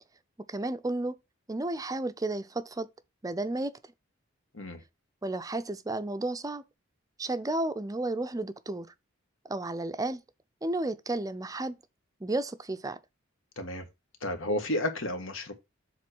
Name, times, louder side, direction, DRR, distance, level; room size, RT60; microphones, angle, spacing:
voice 1, 0.5-1.1 1.5-2.9 3.2-3.7 5.2-6.6 7.2-8.9 9.5-10.2 10.6-11.8 12.2-13.0, right 2 dB, 20° right, 0.5 m, -32 dB
voice 2, 14.2-15.5, left 1 dB, 70° left, 1.6 m, -32 dB
7.5 x 3.2 x 6.2 m
head